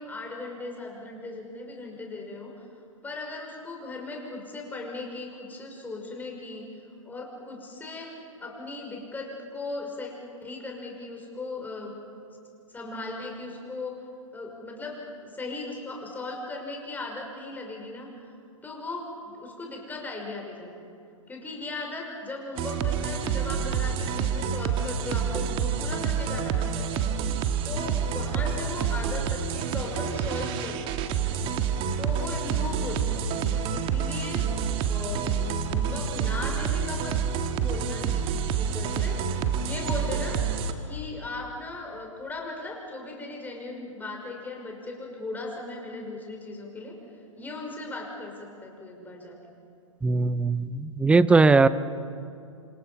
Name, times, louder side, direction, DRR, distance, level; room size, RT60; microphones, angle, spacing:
voice 1, 0.0-2.7 3.0-6.7 7.0-10.1 10.4-12.0 12.7-14.0 14.3-18.1 18.6-20.9 21.3-26.9 27.6-31.0 32.0-34.5 34.8-37.2 37.6-38.3 38.6-40.4 40.9-47.0 47.4-49.4, left 2 dB, 10° left, 0 dB, 5.7 m, -37 dB
sound 1, 22.6-40.7, right 7 dB, 30° right, 1.7 m, -28 dB
voice 2, 50.0-51.7, right 3 dB, 5° right, 16 dB, 0.6 m, -19 dB
27.5 x 27.0 x 5.9 m, 2.5 s
figure-of-eight pair, 115°, 17 cm